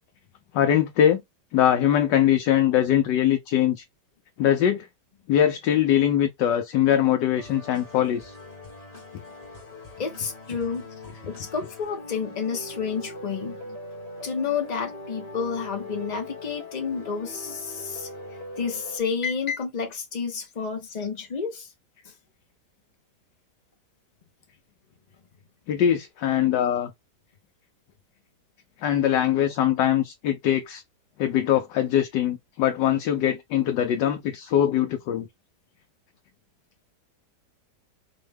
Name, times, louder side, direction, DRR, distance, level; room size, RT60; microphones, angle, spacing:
voice 1, 0.5-1.2 1.5-3.8 4.4-4.9 5.3-8.3 25.7-26.9 28.8-30.8 31.2-35.3, left 10 dB, 80° left, 1.3 m, -22 dB
sound 1, 7.4-19.0, left 2 dB, 25° left, 0.9 m, -41 dB
voice 2, 10.0-13.8 14.2-18.1 18.6-21.7 22.0-22.1, left 5 dB, 60° left, 0.4 m, -30 dB
4.5 x 2.2 x 3.3 m
omnidirectional pair, 1.9 m